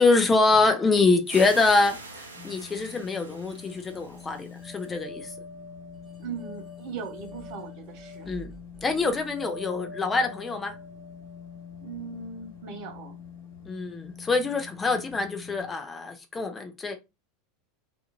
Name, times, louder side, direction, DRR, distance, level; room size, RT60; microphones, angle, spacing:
voice 1, 0.0-2.0 2.4-5.3 8.2-8.5 8.8-10.7 13.7-17.0, left 3 dB, 20° left, 0.5 m, -24 dB
sound 1, 1.3-4.9, right 2 dB, 80° right, 0.6 m, -44 dB
sound 2, 2.3-15.7, left 8 dB, 65° left, 1.1 m, -46 dB
sound 3, 3.6-12.7, left 1 dB, ahead, 0.9 m, -46 dB
voice 2, 6.2-8.3 11.8-13.2, right 5 dB, 50° right, 0.8 m, -39 dB
2.6 x 2.5 x 2.8 m
figure-of-eight pair, 80°, 0 cm